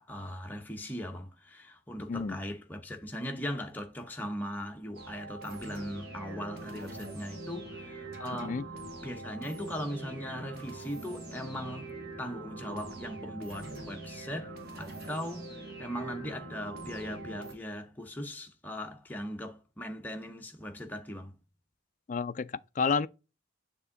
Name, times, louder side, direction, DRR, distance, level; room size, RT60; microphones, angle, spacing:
voice 1, 0.0-8.6 9.0-21.4, equal, 10° left, 0.8 m, -39 dB
sound 1, 4.9-17.5, right 2 dB, 50° right, 2.0 m, -43 dB
voice 2, 22.1-23.1, left 5 dB, 40° left, 0.3 m, -30 dB
7.1 x 3.6 x 3.8 m
head